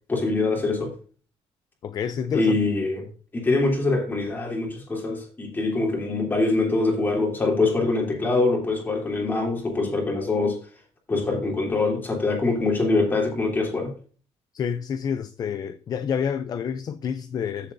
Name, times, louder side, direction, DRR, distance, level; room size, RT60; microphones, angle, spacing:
voice 1, 0.1-0.9 2.3-3.1 3.3-10.6 11.1-13.9, left 3 dB, 15° left, 3.1 m, -24 dB
voice 2, 1.8-2.6 14.5-17.7, left 7 dB, 35° left, 0.5 m, -28 dB
14.0 x 7.1 x 2.6 m
cardioid pair, 170°, 11 cm